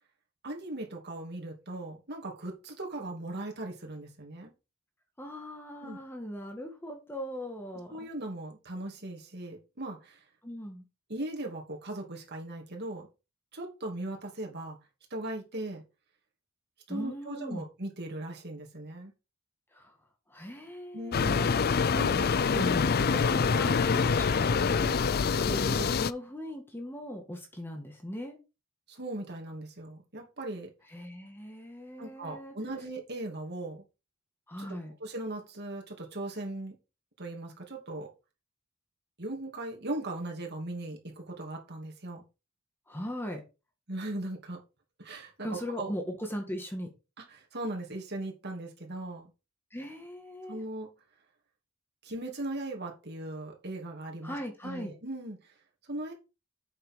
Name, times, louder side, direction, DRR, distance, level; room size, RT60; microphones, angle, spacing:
voice 1, 0.4-4.5 5.8-6.0 7.9-10.2 11.1-13.1 13.5-14.8 15.1-15.8 16.9-19.1 20.9-21.5 21.9-22.7 23.6-23.7 28.9-30.7 32.0-33.8 34.6-36.8 37.2-38.1 39.2-42.2 43.9-44.6 45.0-45.9 47.3-49.3 50.5-50.9 52.0-54.4 54.6-55.5 55.8-56.1, right 1 dB, 50° right, 1 dB, 2.7 m, -38 dB
voice 2, 5.2-8.1 10.4-10.8 16.9-17.6 19.7-19.9 20.3-21.7 22.1-25.0 25.4-28.4 30.9-32.5 34.5-34.9 42.9-43.4 45.4-46.9 49.7-50.6 54.2-54.9, equal, 10° left, 3 dB, 1.7 m, -39 dB
sound 1, 21.1-26.1, left 5 dB, 45° left, 0.4 m, -26 dB
8.4 x 6.6 x 4.7 m, 0.29 s
head